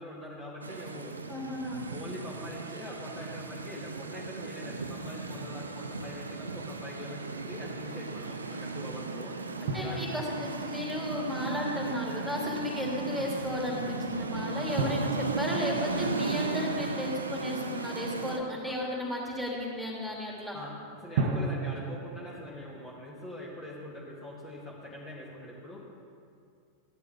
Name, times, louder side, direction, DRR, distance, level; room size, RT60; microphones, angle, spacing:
voice 1, 0.0-1.2 1.9-9.3 9.8-10.0 18.6-18.8 20.5-25.9, left 1 dB, 20° left, -6 dB, 2.2 m, -43 dB
sound 1, 0.6-18.4, right 3 dB, 75° right, 0.7 m, -36 dB
voice 2, 1.3-1.8 9.6-20.5, left 1 dB, ahead, -4 dB, 2.8 m, -34 dB
sound 2, 9.7-11.9 14.8-17.7 21.2-23.1, right 4 dB, 50° right, 1.1 m, -36 dB
16.0 x 11.0 x 3.5 m, 2.4 s
figure-of-eight pair, 90°, 0 cm